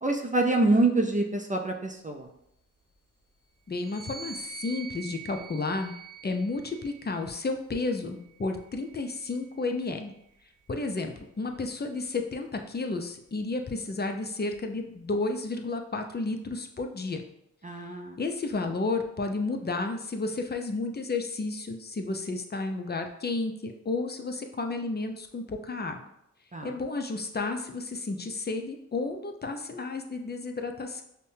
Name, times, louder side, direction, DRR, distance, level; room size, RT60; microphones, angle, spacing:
voice 1, 0.0-2.3 17.6-18.2 26.5-26.7, right 2 dB, 25° right, 3 dB, 0.5 m, -26 dB
voice 2, 3.7-5.9 6.2-10.1 10.7-17.2 18.2-26.0 26.6-31.0, left 3 dB, 30° left, 4 dB, 0.5 m, -32 dB
sound 1, 3.7-7.3 8.1-9.7, right 7 dB, 85° right, 0.6 m, -46 dB
5.2 x 2.2 x 2.7 m, 0.77 s
cardioid pair, 45°, 31 cm